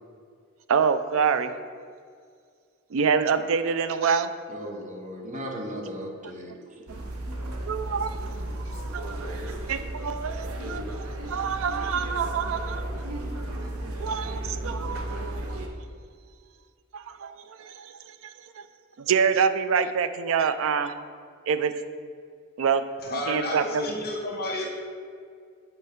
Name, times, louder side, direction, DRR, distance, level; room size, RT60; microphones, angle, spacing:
voice 1, 0.7-1.5 2.9-4.3 6.9-7.0 7.7-8.2 8.9-9.3 9.7-12.9 14.0-15.6 16.9-18.3 18.6-18.7 19.0-20.9 21.5-21.7 22.6-23.9, right 6 dB, 70° right, 11 dB, 0.4 m, -26 dB
voice 2, 4.5-6.8, equal, 35° right, 0 dB, 0.9 m, -36 dB
sound 1, 6.9-15.7, right 1 dB, 90° right, 0.7 m, -34 dB
voice 3, 23.0-24.7, left 1 dB, 45° left, 0 dB, 1.2 m, -31 dB
7.8 x 4.6 x 3.6 m, 2.1 s
head